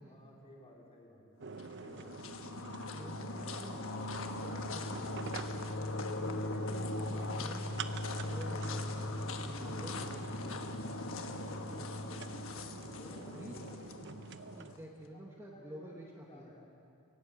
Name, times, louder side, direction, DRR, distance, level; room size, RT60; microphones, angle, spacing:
voice 1, 0.1-1.4 1.8-2.4 2.8-3.6 11.7-12.3 13.0-14.0 15.1-16.7, equal, 30° left, -2 dB, 4.0 m, -56 dB
sound 1, 1.4-14.7, right 5 dB, 55° right, 0.7 m, -48 dB
sound 2, 1.5-14.8, left 2 dB, 65° left, 1.3 m, -39 dB
voice 2, 2.9-3.8 4.1-5.7 6.0-7.7 8.2-9.1 9.4-10.8 13.3-13.6 14.5-16.5, right 1 dB, 10° right, 0 dB, 1.4 m, -50 dB
18.5 x 17.5 x 8.1 m, 2.5 s
head